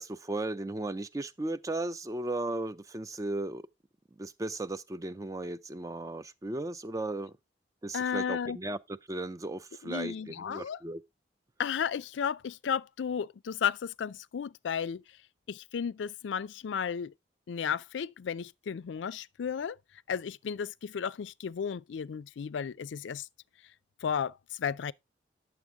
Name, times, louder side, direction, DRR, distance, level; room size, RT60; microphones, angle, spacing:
voice 1, 0.0-3.6 4.1-7.3 7.8-8.8 9.1-11.0, right 2 dB, 20° right, 0.4 m, -36 dB
voice 2, 7.9-8.6 9.8-10.8 11.6-15.0 15.5-17.1 17.5-19.8 20.1-23.3 24.0-24.9, left 7 dB, 90° left, 0.4 m, -33 dB
9.5 x 7.0 x 3.5 m
head